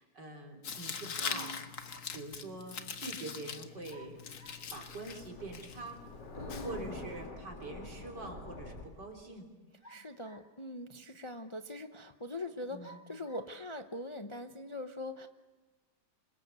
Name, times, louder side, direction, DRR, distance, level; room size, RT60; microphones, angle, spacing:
voice 1, 0.0-1.8 2.1-4.2 4.7-6.0 6.6-9.5 9.8-10.0 12.7-13.0, right 2 dB, 85° right, 1 dB, 4.1 m, -45 dB
Tearing, 0.6-7.3, left 6 dB, 50° left, 1.5 m, -43 dB
voice 2, 1.2-1.6 6.4-6.9 9.9-15.3, left 1 dB, 30° left, 7 dB, 0.6 m, -42 dB
sound 1, 1.3-2.2 3.9-4.7 6.6-7.4 9.8-10.7 11.4-11.5 12.8-13.5, right 1 dB, 10° left, 1.5 m, -56 dB
Thunder, 4.0-8.8, left 2 dB, 80° left, 3.7 m, -46 dB
26.0 x 21.5 x 8.2 m, 1.2 s
omnidirectional pair, 1.8 m